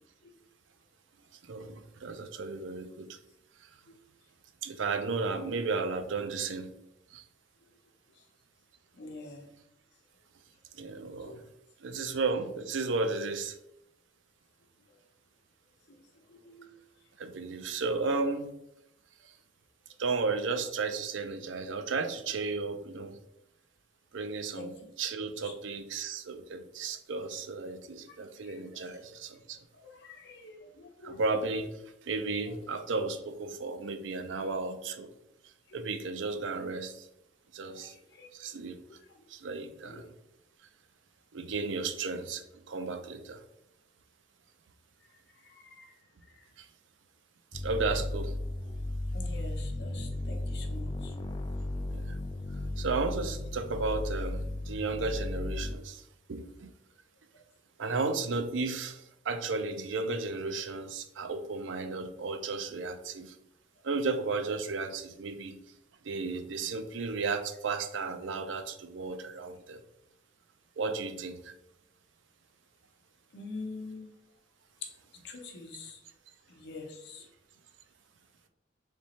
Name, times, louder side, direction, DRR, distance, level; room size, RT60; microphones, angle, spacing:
voice 1, 1.4-3.2 3.6-3.7 4.6-6.7 7.1-7.2 10.7-11.4 11.8-13.6 17.2-18.5 19.3-19.4 20.0-23.2 24.1-29.7 31.0-35.1 35.7-37.1 37.5-37.9 38.3-38.8 39.3-40.1 41.3-43.4 46.6-46.7 47.5-48.3 51.9-52.2 52.8-56.0 56.3-56.7 57.8-63.3 63.8-65.6 66.0-69.8 70.8-71.5, right 3 dB, 75° right, 8 dB, 0.5 m, -34 dB
voice 2, 8.9-9.6 11.2-11.4 15.9-16.0 16.3-16.7 24.5-24.7 25.4-25.5 28.1-28.2 28.4-28.5 29.8-31.2 34.4-34.5 37.8-38.6 38.9-39.2 39.8-40.1 45.4-45.9 46.3-46.5 49.1-51.2 57.3-57.4 73.3-74.1 74.8-74.9 75.2-76.0 76.5-77.3, left 3 dB, 60° left, 3 dB, 0.8 m, -46 dB
sound 1, 47.5-55.8, left 1 dB, 25° left, 0.3 m, -35 dB
3.4 x 3.0 x 4.1 m, 0.84 s
head